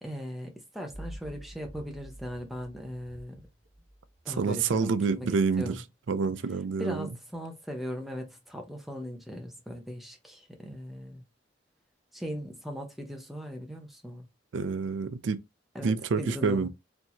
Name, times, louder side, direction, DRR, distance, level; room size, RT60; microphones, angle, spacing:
voice 1, 0.0-3.4 4.2-5.3 5.6-5.8 6.8-11.2 12.1-14.3 15.7-16.7, equal, ahead, 0.8 m, -39 dB
sound 1, 0.9-4.4, right 1 dB, 60° right, 1.0 m, -47 dB
voice 2, 4.3-7.1 14.5-15.4 15.8-16.7, right 5 dB, 85° right, 0.4 m, -28 dB
4.4 x 2.8 x 2.7 m
head